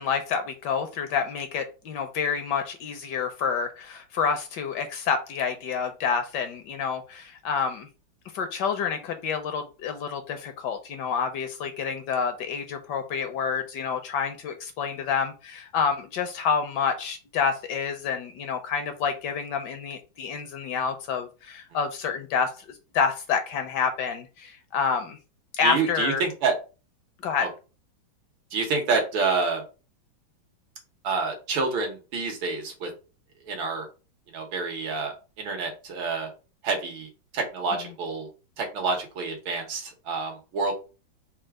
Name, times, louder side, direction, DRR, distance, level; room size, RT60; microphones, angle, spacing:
voice 1, 0.0-7.9 8.3-25.2 25.5-26.2 27.2-27.5, left 6 dB, 70° left, 7 dB, 1.1 m, -28 dB
voice 2, 25.6-26.5 27.4-27.5 28.5-29.6 31.0-32.9 33.5-33.9 34.3-36.3 36.6-38.3 38.6-40.7, right 4 dB, 80° right, 2 dB, 2.0 m, -28 dB
4.3 x 2.4 x 4.7 m, 0.32 s
omnidirectional pair, 2.2 m